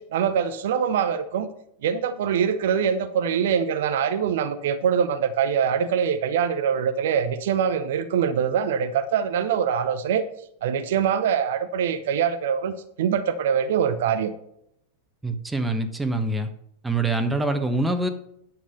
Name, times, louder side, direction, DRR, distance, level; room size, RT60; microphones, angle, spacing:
voice 1, 0.1-1.5 1.8-10.3 10.6-14.3, right 7 dB, 55° right, 0.7 m, -23 dB
voice 2, 15.2-16.5 16.8-18.1, right 2 dB, 5° right, 1.1 m, -25 dB
9.7 x 7.3 x 5.5 m
figure-of-eight pair, 90°, 0 cm